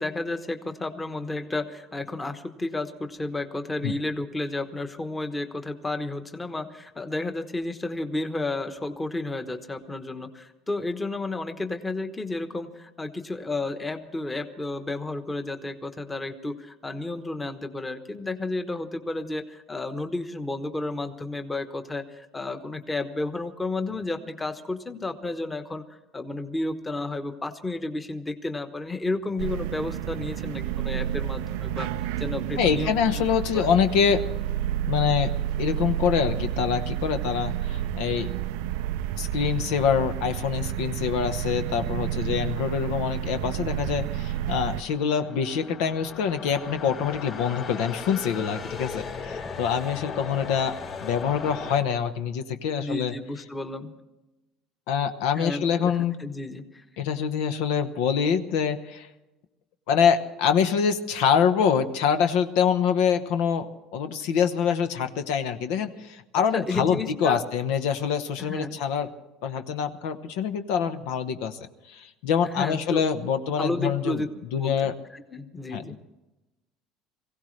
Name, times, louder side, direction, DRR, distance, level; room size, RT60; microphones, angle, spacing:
voice 1, 0.0-25.8 26.1-33.2 33.5-33.7 52.8-53.9 55.3-55.9 56.2-56.8 66.5-67.4 68.4-68.8 72.4-73.1 73.6-74.3 74.6-75.9, left 2 dB, 15° left, 8 dB, 1.1 m, -32 dB
sound 1, 29.4-44.8, right 12 dB, 85° right, 0.4 m, -30 dB
voice 2, 32.6-34.2 34.8-35.3 35.6-38.3 39.2-50.7 51.0-53.1 54.9-56.1 57.0-59.1 59.9-69.1 69.4-74.2 74.5-75.0 75.7-76.0, left 7 dB, 80° left, 9 dB, 1.1 m, -25 dB
sound 2, 43.9-51.8, left 5 dB, 45° left, 3.1 m, -37 dB
23.0 x 16.0 x 3.3 m, 1.0 s
cardioid pair, 130°, 0 cm